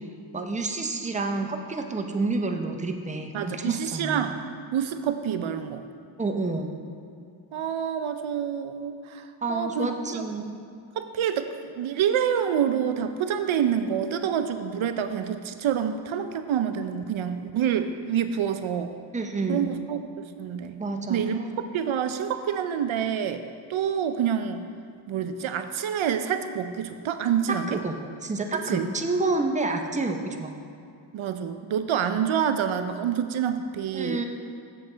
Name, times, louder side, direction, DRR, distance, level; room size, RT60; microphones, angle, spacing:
voice 1, 0.3-4.3 6.2-6.7 9.4-10.6 19.1-19.7 20.8-21.6 27.5-30.5 33.9-34.2, right 3 dB, 15° right, 4 dB, 0.6 m, -29 dB
voice 2, 3.3-4.4 4.7-5.9 7.5-10.2 11.0-18.9 19.5-20.8 21.1-21.4 21.7-23.4 23.7-24.6 25.1-27.7 28.7-28.9 31.1-34.2, right 8 dB, 75° right, 9 dB, 0.5 m, -27 dB
7.5 x 7.3 x 3.9 m, 2.4 s
cardioid pair, 70°, 48 cm